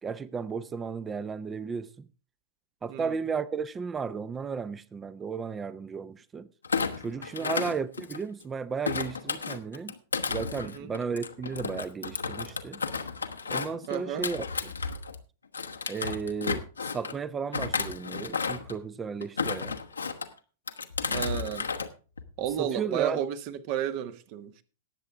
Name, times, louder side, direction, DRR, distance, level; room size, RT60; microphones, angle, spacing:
voice 1, 0.0-2.1 2.8-6.5 7.0-9.9 10.3-12.8 13.5-14.7 15.9-19.8 22.6-23.2, right 5 dB, 20° right, 0.6 m, -34 dB
Thump thud, 6.6-8.4 8.8-15.2 15.5-17.1 17.5-18.8 19.2-20.3 20.7-21.9 22.2-22.5, left 5 dB, 80° left, 1.0 m, -33 dB
voice 2, 10.6-10.9 13.9-14.3 21.1-21.7 22.4-24.6, right 10 dB, 45° right, 1.0 m, -33 dB
18.0 x 7.7 x 3.5 m
figure-of-eight pair, 100°, 0 cm